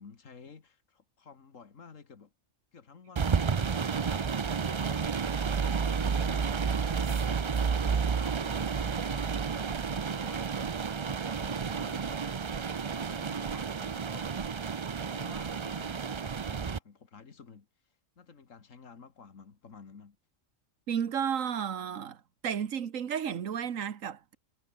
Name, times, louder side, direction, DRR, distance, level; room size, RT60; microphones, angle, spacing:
voice 1, 0.0-2.3 2.7-7.0 7.5-10.5 10.9-12.4 12.8-14.5 14.9-17.7 18.2-20.2, left 5 dB, 85° left, 2.3 m, -52 dB
sound 1, 3.2-16.8, right 6 dB, 40° right, 0.4 m, -31 dB
voice 2, 20.9-24.4, right 8 dB, 85° right, 1.6 m, -33 dB
omnidirectional pair, 1.3 m